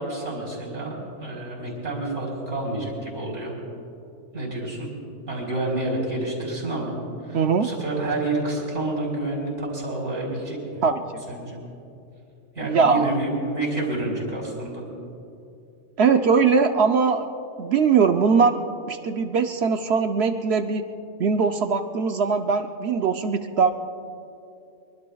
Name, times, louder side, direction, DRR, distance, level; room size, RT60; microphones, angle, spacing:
voice 1, 0.0-3.5 4.3-4.9 5.3-6.9 7.2-10.9 11.3-11.6 12.5-14.8, right 2 dB, 85° right, -5 dB, 4.1 m, -29 dB
voice 2, 7.3-7.7 10.8-11.0 12.6-13.1 16.0-17.3 17.6-18.6 18.9-20.9 21.2-23.7, right 5 dB, 65° right, 6 dB, 0.9 m, -21 dB
23.5 x 23.0 x 2.3 m, 2.7 s
omnidirectional pair, 1.2 m